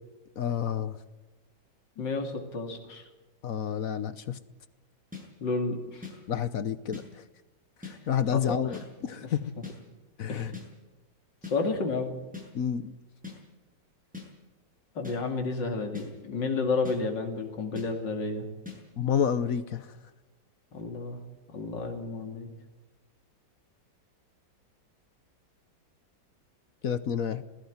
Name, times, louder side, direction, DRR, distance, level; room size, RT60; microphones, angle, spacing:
voice 1, 0.4-1.0 3.4-4.4 6.3-7.0 7.8-9.4 10.2-10.5 12.5-12.9 19.0-19.9 26.8-27.4, left 8 dB, 55° left, 14 dB, 1.2 m, -29 dB
voice 2, 2.0-3.1 5.4-6.2 8.3-8.8 9.2-9.3 10.3-10.5 11.4-12.1 14.9-18.5 20.7-21.2 21.5-22.5, left 3 dB, 85° left, 4 dB, 3.1 m, -31 dB
sound 1, 5.1-5.2 6.0-6.1 6.9-7.0 7.8-8.0 8.7-8.9 9.6-9.8 10.5-10.7 11.4-11.6 12.3-12.5 13.2-13.4 14.1-14.3 15.0-15.2 15.9-16.1 16.8-17.0 17.8-17.9 18.7-18.8, left 4 dB, 5° right, 8.0 m, -40 dB
19.5 x 16.0 x 9.6 m, 1.1 s
omnidirectional pair, 1.9 m